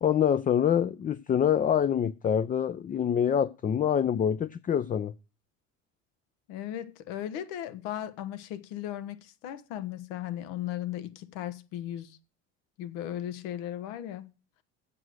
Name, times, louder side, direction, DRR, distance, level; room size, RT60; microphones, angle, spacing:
voice 1, 0.0-5.1, left 8 dB, 25° left, 0.5 m, -25 dB
voice 2, 6.5-12.2 12.8-14.2, left 11 dB, 80° left, 1.3 m, -36 dB
7.8 x 7.7 x 6.3 m
supercardioid pair, 105°, 32 cm